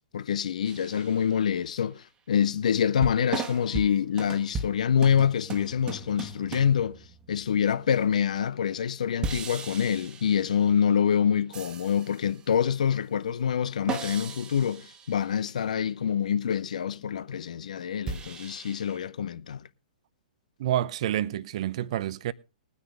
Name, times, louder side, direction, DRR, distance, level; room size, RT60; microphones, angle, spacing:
voice 1, 0.1-7.0 7.3-19.6, left 8 dB, 60° left, 0.7 m, -26 dB
sound 1, 0.7-1.6 3.0-8.0 9.2-11.0 11.5-12.5 13.9-15.6 18.1-19.0, right 4 dB, 20° right, 1.4 m, -38 dB
voice 2, 20.6-22.3, right 12 dB, 50° right, 0.7 m, -28 dB
20.5 x 9.7 x 3.4 m
figure-of-eight pair, 115°, 4 cm